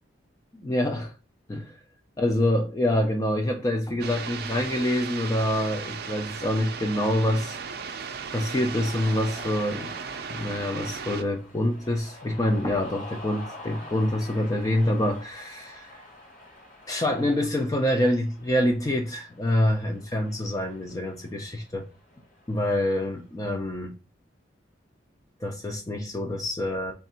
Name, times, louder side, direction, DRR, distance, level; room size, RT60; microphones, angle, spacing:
voice 1, 0.5-1.1 1.5-1.7 2.2-7.6 8.3-9.9 10.3-16.0 16.9-21.9 22.5-23.9 25.4-26.9, left 1 dB, 20° left, 0.4 m, -26 dB
sound 1, 4.0-11.2, right 6 dB, 55° right, 0.4 m, -36 dB
Cheering, 8.4-23.2, left 2 dB, 40° left, 2.0 m, -47 dB
3.5 x 2.5 x 4.1 m
head